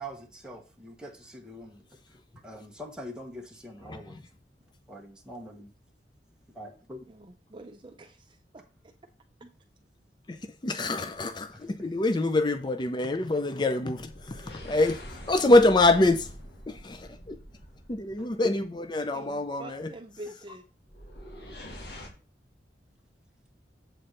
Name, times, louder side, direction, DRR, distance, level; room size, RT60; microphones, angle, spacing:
voice 1, 0.0-2.0 2.4-4.2 4.9-5.7 6.5-7.0 9.4-9.5 11.5-11.6 18.2-18.5, equal, 5° right, 1.2 m, -43 dB
voice 2, 7.1-8.9 19.1-20.6, right 1 dB, 25° right, 0.5 m, -46 dB
voice 3, 10.6-15.0 15.3-16.3 16.7-17.4 17.9-19.9, left 2 dB, 25° left, 0.5 m, -25 dB
sound 1, 11.2-11.5 13.9-18.5 20.9-22.1, equal, 65° left, 2.0 m, -45 dB
7.9 x 4.3 x 6.4 m
head